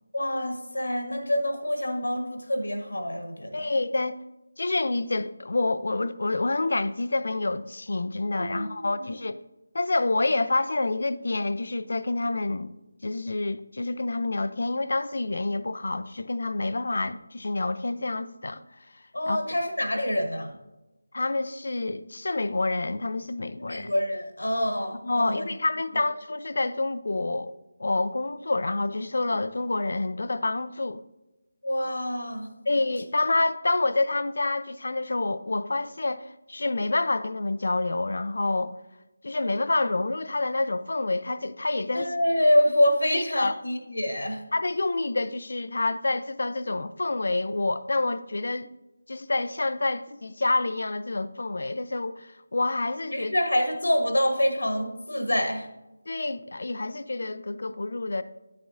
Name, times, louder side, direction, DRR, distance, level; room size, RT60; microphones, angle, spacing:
voice 1, 0.1-3.7 8.4-9.1 19.1-20.5 23.7-25.4 31.6-32.5 41.9-44.4 53.1-55.7, left 1 dB, 75° left, 1.3 m, -26 dB
voice 2, 3.5-4.2 4.6-9.4 9.7-12.7 13.0-18.6 19.3-19.4 21.1-23.9 25.0-27.5 27.8-31.0 32.7-38.8 39.2-42.1 43.1-43.6 44.5-48.7 49.1-53.3 56.1-58.2, left 2 dB, 60° left, 0.4 m, -28 dB
9.7 x 7.2 x 2.7 m
figure-of-eight pair, 160°, 0 cm